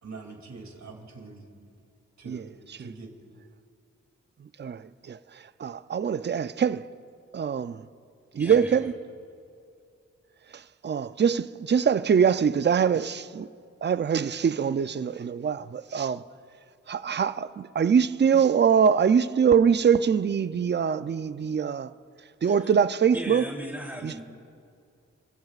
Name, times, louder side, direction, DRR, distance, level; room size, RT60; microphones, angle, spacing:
voice 1, 0.0-1.5 2.2-3.1, right 4 dB, 65° right, 2.8 m, -44 dB
voice 2, 5.6-6.9 7.3-7.8 8.3-8.9 10.8-13.5 13.8-16.2 16.9-21.9 22.4-23.4 24.0-24.2, right 7 dB, 35° right, 0.5 m, -23 dB
voice 3, 8.4-8.9 22.4-22.7 23.1-24.2, right 1 dB, 5° right, 3.1 m, -37 dB
29.0 x 15.5 x 2.5 m
cardioid pair, 50°, 30 cm